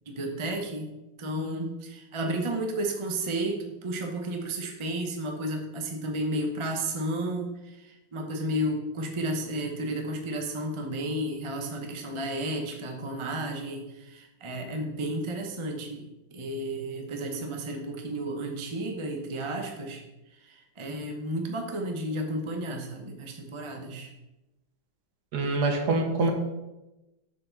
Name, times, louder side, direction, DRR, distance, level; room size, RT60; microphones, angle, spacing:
voice 1, 0.1-0.9 1.2-16.1 16.3-20.0 20.5-24.1, right 1 dB, 30° right, 2 dB, 0.5 m, -32 dB
voice 2, 25.3-26.3, right 3 dB, 60° right, 3 dB, 1.6 m, -25 dB
6.8 x 6.6 x 3.9 m, 0.99 s
omnidirectional pair, 2.0 m